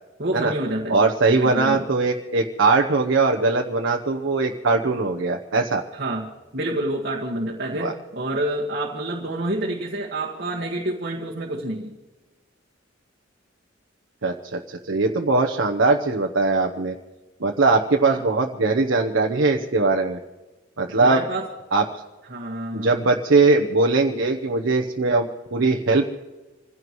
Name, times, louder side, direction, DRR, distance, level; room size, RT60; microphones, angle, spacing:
voice 1, 0.2-1.8 5.9-12.0 18.0-18.2 20.9-21.5 22.3-23.0, right 1 dB, 50° right, -3 dB, 1.8 m, -28 dB
voice 2, 0.9-5.8 7.8-7.9 14.2-16.9 17.4-20.2 20.8-21.2 21.7-22.0 22.7-26.0, right 3 dB, 90° right, 1 dB, 0.9 m, -20 dB
26.0 x 16.5 x 3.1 m, 1.2 s
head